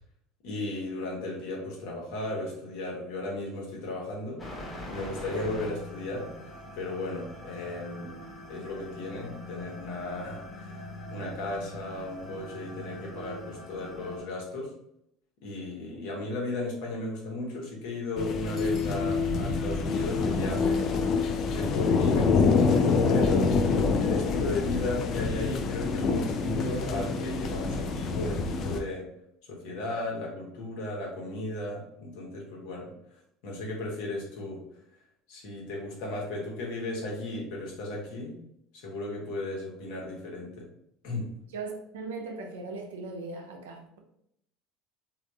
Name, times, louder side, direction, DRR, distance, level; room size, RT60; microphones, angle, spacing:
voice 1, 0.4-4.4 4.9-8.2 8.5-14.7 15.4-21.1 21.5-23.5 24.0-29.1 29.4-34.6 35.3-38.4 38.7-40.7 41.0-41.3, left 2 dB, 70° left, -1 dB, 1.1 m, -35 dB
sound 1, 4.4-14.2, left 1 dB, 25° left, 1.1 m, -42 dB
sound 2, 18.2-28.8, left 4 dB, 50° left, 0.4 m, -26 dB
voice 2, 41.5-44.0, right 3 dB, 80° right, 3 dB, 0.6 m, -38 dB
3.4 x 2.5 x 2.7 m, 0.75 s
hypercardioid pair, 70°, 0 cm